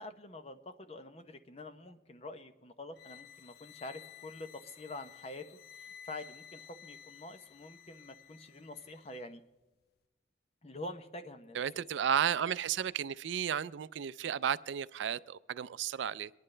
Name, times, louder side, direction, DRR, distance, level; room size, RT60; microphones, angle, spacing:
voice 1, 0.0-5.5 5.8-9.4 10.6-11.8, left 2 dB, 35° left, 0.8 m, -46 dB
sound 1, 2.9-9.3, left 9 dB, 60° left, 0.4 m, -54 dB
voice 2, 11.5-16.3, right 8 dB, 80° right, 0.4 m, -33 dB
23.5 x 10.5 x 3.3 m
head